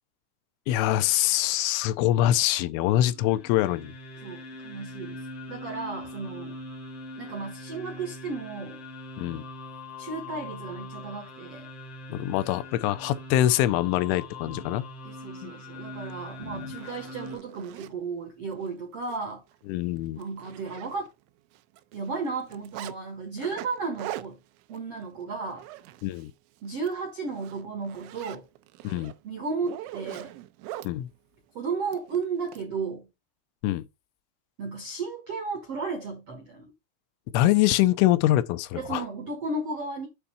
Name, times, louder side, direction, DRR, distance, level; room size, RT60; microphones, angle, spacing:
voice 1, 0.7-3.9 9.2-9.4 12.1-14.8 15.4-15.5 16.5-16.7 19.7-20.2 26.0-26.3 28.8-29.1 30.8-31.1 33.6-33.8 37.3-39.0, left 14 dB, 90° left, 3.2 m, -24 dB
sound 1, 3.0-17.4, left 1 dB, 70° left, 1.4 m, -42 dB
voice 2, 4.2-6.6 7.1-8.8 10.0-11.7 15.0-19.4 20.2-21.1 21.9-24.4 24.7-25.7 26.6-28.5 29.2-30.3 31.5-33.1 34.6-36.7 38.7-40.1, right 4 dB, 75° right, 1.4 m, -34 dB
Zipper (clothing), 16.1-16.2 16.6-17.9 18.5-18.7 19.0-19.2 19.5-19.6 20.0-21.3 21.5-23.0 23.4-26.3 26.7-26.9 27.3-30.9 31.9-32.6, right 14 dB, 90° right, 3.1 m, -42 dB
8.5 x 3.6 x 5.6 m
omnidirectional pair, 5.4 m